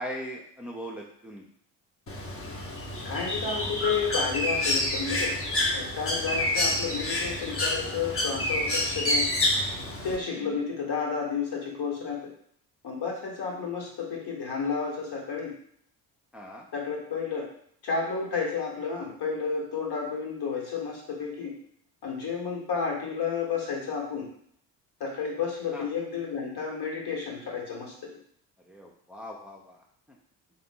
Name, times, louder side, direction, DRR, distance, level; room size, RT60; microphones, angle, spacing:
voice 1, 0.0-1.5 6.2-6.5 10.3-10.6 16.3-16.7 25.7-25.9 28.7-30.2, equal, ahead, -2 dB, 0.7 m, -40 dB
Bird, 2.1-10.2, left 1 dB, 25° left, 1.1 m, -28 dB
voice 2, 3.0-5.3 5.7-9.4 10.0-12.3 12.8-15.5 16.7-17.5 17.8-21.5 22.0-24.3 25.0-27.9, left 5 dB, 50° left, -2 dB, 1.6 m, -31 dB
3.7 x 2.6 x 3.7 m, 0.65 s
hypercardioid pair, 55°, 49 cm